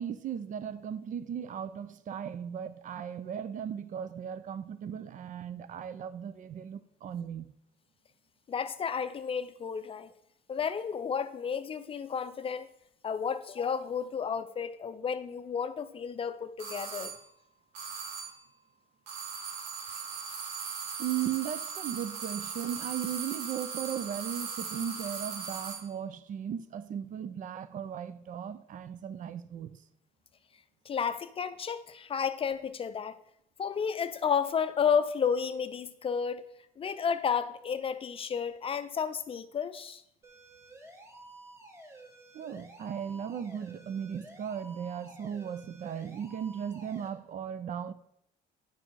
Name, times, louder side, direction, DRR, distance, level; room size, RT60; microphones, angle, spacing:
voice 1, 0.0-7.5 21.0-29.8 42.3-47.9, right 8 dB, 50° right, 0.5 m, -37 dB
voice 2, 8.5-10.1 10.5-12.7 13.0-17.1 30.9-33.2 33.6-36.4 36.8-40.0, left 7 dB, 35° left, 0.5 m, -32 dB
sound 1, 16.6-17.3 17.7-18.5 19.1-25.9, right 6 dB, 85° right, 2.0 m, -39 dB
sound 2, 40.2-47.1, right 2 dB, 15° right, 1.7 m, -52 dB
10.0 x 4.1 x 4.6 m
cardioid pair, 110°, 17 cm